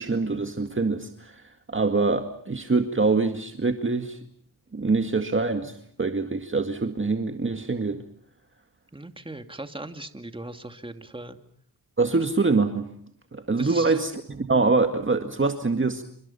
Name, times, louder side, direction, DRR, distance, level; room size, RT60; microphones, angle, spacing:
voice 1, 0.0-1.4 1.7-4.2 4.7-8.0 12.0-12.9 13.3-16.0, right 3 dB, 30° right, 6 dB, 2.0 m, -24 dB
voice 2, 8.9-11.4 13.6-14.0, right 2 dB, 15° right, 7 dB, 2.6 m, -39 dB
29.5 x 26.5 x 5.7 m, 0.62 s
cardioid pair, 65°, 39 cm